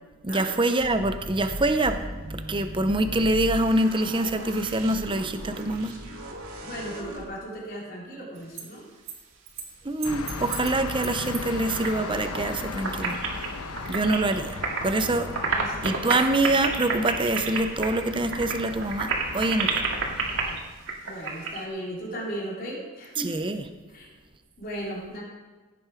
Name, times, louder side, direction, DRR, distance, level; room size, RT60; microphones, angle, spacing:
voice 1, 0.2-2.0 2.3-5.9 9.8-13.2 13.9-14.5 14.8-15.3 15.8-19.8 23.2-23.6, right 2 dB, 20° right, 8 dB, 0.7 m, -25 dB
sound 1, 0.8-7.2, equal, 75° right, 2.3 m, -38 dB
voice 2, 6.6-8.9 13.8-14.3 14.8-15.2 15.5-16.2 21.0-23.3 23.9-24.1 24.6-25.2, equal, 45° left, -5 dB, 3.9 m, -37 dB
sound 2, 8.4-8.6 9.1-9.2 9.5-9.7 10.0-11.9 12.2-12.6 12.8-14.9 15.2-21.6, right 4 dB, 60° right, 2.1 m, -30 dB
sound 3, 10.0-20.6, left 3 dB, 85° left, 1.0 m, -37 dB
16.5 x 7.8 x 5.1 m, 1.3 s
head